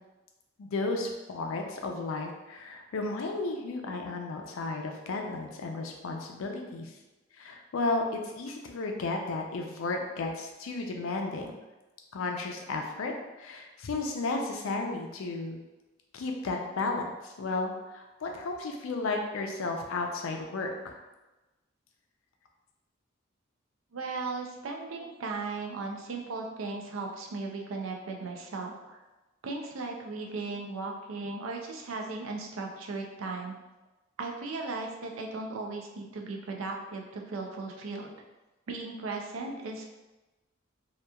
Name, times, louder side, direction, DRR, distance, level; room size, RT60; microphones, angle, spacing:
voice 1, 0.6-6.9 7.4-11.5 12.1-13.1 13.4-15.6 16.1-21.0 25.0-25.1 39.4-39.6, left 3 dB, 85° left, 2 dB, 0.4 m, -33 dB
voice 2, 23.9-29.0 29.4-33.5 34.2-38.1 38.7-39.9, right 3 dB, 80° right, 1 dB, 0.4 m, -37 dB
2.8 x 2.3 x 2.2 m, 1.1 s
head